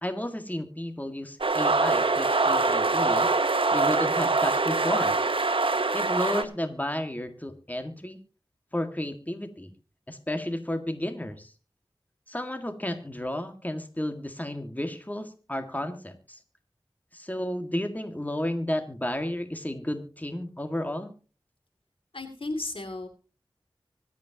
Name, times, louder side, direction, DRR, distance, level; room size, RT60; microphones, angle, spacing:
voice 1, 0.0-3.3 3.7-5.2 5.9-8.2 8.7-9.7 10.1-11.5 12.3-16.4 17.1-21.2, left 1 dB, 20° left, 7 dB, 1.9 m, -32 dB
sound 1, 1.4-6.4, right 3 dB, 80° right, 1.1 m, -24 dB
voice 2, 22.1-23.1, left 2 dB, 80° left, 6 dB, 2.7 m, -34 dB
25.0 x 8.5 x 2.9 m, 0.36 s
wide cardioid pair, 45°, 9 cm